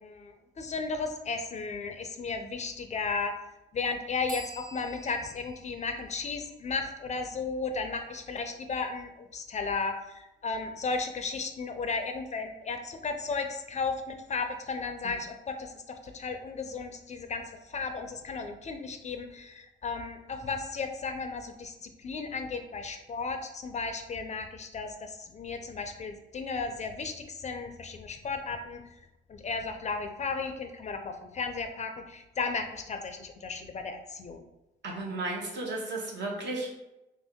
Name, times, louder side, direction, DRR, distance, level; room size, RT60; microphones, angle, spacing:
voice 1, 0.0-3.3 3.7-28.8 29.3-34.4, left 4 dB, 35° left, 6 dB, 0.4 m, -34 dB
sound 1, 4.3-7.8, equal, 40° right, 0.7 m, -49 dB
voice 2, 34.8-36.8, right 2 dB, 60° right, -2 dB, 1.0 m, -34 dB
2.9 x 2.6 x 3.5 m, 0.94 s
cardioid pair, 90°, 20 cm